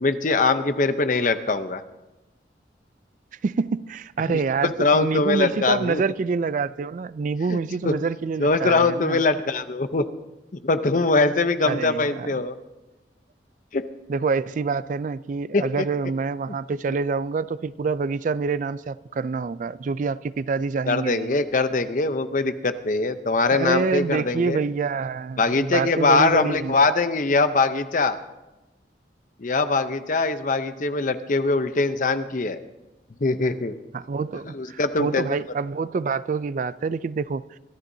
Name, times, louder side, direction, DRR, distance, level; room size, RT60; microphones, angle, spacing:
voice 1, 0.0-1.8 4.3-4.4 4.8-6.0 7.5-7.9 8.4-10.0 10.6-12.5 13.7-13.8 15.5-15.7 20.9-24.6 25.4-28.2 29.4-32.6 33.2-33.8 34.5-35.3, left 3 dB, 45° left, 0.7 m, -22 dB
voice 2, 3.4-9.2 11.6-12.3 14.1-21.4 23.5-26.8 33.9-37.6, right 4 dB, 45° right, 0.3 m, -27 dB
23.5 x 13.0 x 2.7 m
head